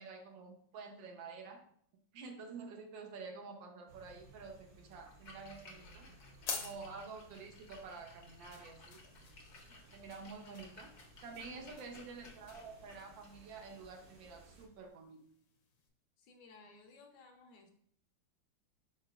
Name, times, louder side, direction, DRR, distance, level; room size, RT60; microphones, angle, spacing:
voice 1, 0.0-1.7 2.1-6.1 6.5-9.0 9.9-10.9 11.2-15.2, right 4 dB, 80° right, 3 dB, 1.5 m, -49 dB
sound 1, 3.9-14.7, right 2 dB, 50° right, 0.6 m, -61 dB
Splash splatter, 5.1-14.9, left 3 dB, 55° left, 0.8 m, -59 dB
sound 2, 5.7-15.9, left 6 dB, 90° left, 1.6 m, -51 dB
voice 2, 11.4-11.9 16.2-17.7, left 3 dB, 70° left, 4 dB, 1.2 m, -60 dB
4.9 x 4.4 x 2.3 m, 0.63 s
omnidirectional pair, 2.1 m